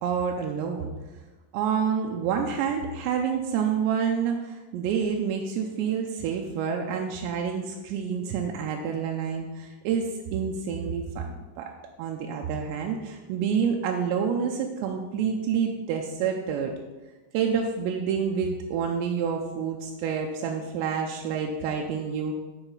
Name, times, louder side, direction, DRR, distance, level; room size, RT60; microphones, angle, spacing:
voice 1, 0.0-0.9 1.5-11.3 11.6-11.7 12.0-16.7 17.3-22.4, right 7 dB, 85° right, 2 dB, 2.8 m, -28 dB
9.0 x 4.8 x 5.4 m, 1.2 s
omnidirectional pair, 5.1 m